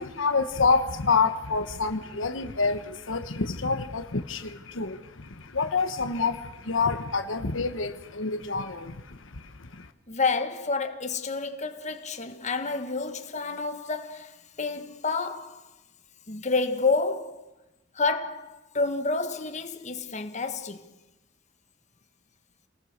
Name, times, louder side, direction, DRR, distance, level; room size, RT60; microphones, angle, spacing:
voice 1, 0.0-9.9, left 4 dB, 75° left, 1.2 m, -28 dB
voice 2, 10.1-15.6 16.3-17.4 17.9-20.9, left 3 dB, 35° left, 1.5 m, -29 dB
29.0 x 19.0 x 6.6 m
head